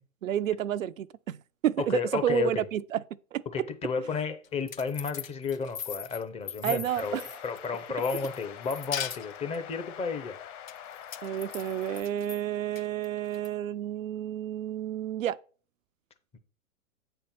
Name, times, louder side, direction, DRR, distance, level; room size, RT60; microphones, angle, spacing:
voice 1, 0.2-1.4 1.6-3.0 3.3-3.4 6.6-7.3 11.2-15.4, right 11 dB, 80° right, 0.5 m, -30 dB
voice 2, 1.8-2.6 3.5-10.4, left 5 dB, 15° left, 0.7 m, -32 dB
sound 1, 4.4-7.7 8.0-9.6 10.7-12.4 12.8-13.5, left 8 dB, 85° left, 0.7 m, -39 dB
sound 2, 6.9-12.0, left 10 dB, 35° left, 1.1 m, -45 dB
8.5 x 4.5 x 5.6 m
hypercardioid pair, 110°, 39 cm